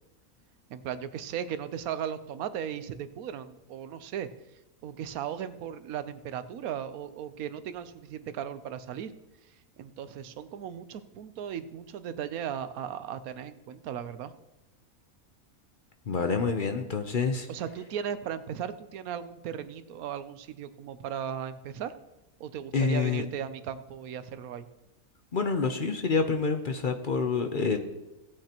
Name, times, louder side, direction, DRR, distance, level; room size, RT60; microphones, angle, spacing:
voice 1, 0.7-4.3 4.8-9.1 9.4-14.3 17.5-21.9 22.4-24.7, right 9 dB, 85° right, 12 dB, 1.2 m, -37 dB
voice 2, 16.1-17.5 22.7-23.2 25.3-27.8, left 4 dB, 45° left, 6 dB, 0.8 m, -27 dB
17.0 x 8.7 x 2.9 m, 0.96 s
omnidirectional pair, 1.5 m